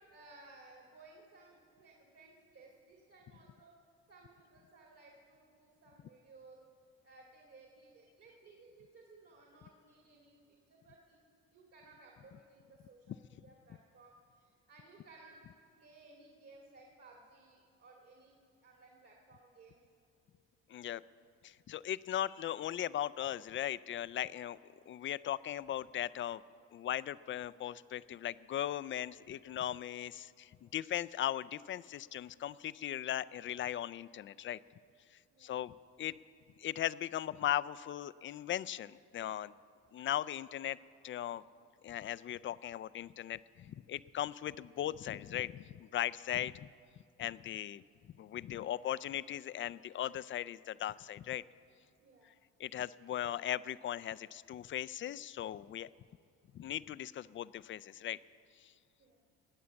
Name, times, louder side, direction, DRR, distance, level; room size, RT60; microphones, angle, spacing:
voice 1, 0.1-3.8 4.1-6.6 7.0-11.2 11.5-15.4 15.8-18.4 18.6-19.8 35.3-35.6 52.0-52.3 59.0-59.2, right 3 dB, 50° right, -1 dB, 2.4 m, -59 dB
voice 2, 20.7-21.0 21.4-24.6 24.9-26.4 26.7-34.6 35.1-36.1 36.6-39.5 39.9-40.8 41.0-41.4 41.8-46.7 47.2-47.8 48.2-51.4 52.6-55.9 56.5-58.2 58.6-58.7, left 11 dB, 40° left, 17 dB, 0.4 m, -38 dB
20.0 x 8.5 x 7.1 m, 2.3 s
supercardioid pair, 85°, 32 cm